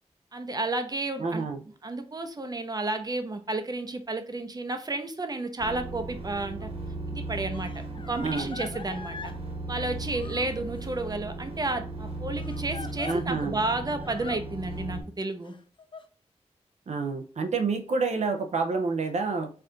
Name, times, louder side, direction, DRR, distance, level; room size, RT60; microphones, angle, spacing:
voice 1, 0.3-1.5 1.8-6.7 7.1-9.3 9.7-15.6, right 2 dB, 35° right, 7 dB, 0.7 m, -32 dB
voice 2, 1.2-1.6 8.2-8.5 13.0-13.6 16.9-19.5, right 4 dB, 75° right, 5 dB, 0.5 m, -28 dB
sound 1, 5.6-15.0, right 2 dB, 55° right, 1.1 m, -37 dB
Crying sobbing, 6.6-6.7 7.5-9.4 10.1-11.0 12.4-13.2 14.0-14.4 15.4-16.0, left 4 dB, 45° left, 0.5 m, -42 dB
4.3 x 2.5 x 3.7 m, 0.40 s
cardioid pair, 60°, 12 cm